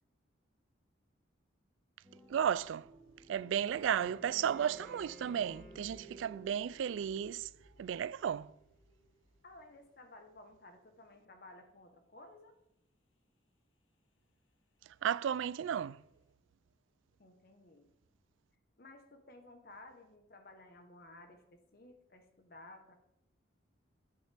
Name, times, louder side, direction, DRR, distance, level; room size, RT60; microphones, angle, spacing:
sound 1, 2.0-7.2, left 1 dB, ahead, 2.3 m, -59 dB
sound 2, 2.3-10.4, right 3 dB, 85° left, 1.4 m, -60 dB
voice 1, 2.3-2.9 3.3-7.5 7.8-8.5 15.0-16.0, right 8 dB, 80° right, 0.3 m, -34 dB
Wind instrument woodwind instrument, 3.4-6.7, right 2 dB, 30° left, 2.4 m, -57 dB
voice 2, 9.4-12.5 17.2-17.9 18.8-21.4 21.7-22.9, left 2 dB, 50° left, 1.0 m, -55 dB
11.0 x 9.4 x 3.4 m
head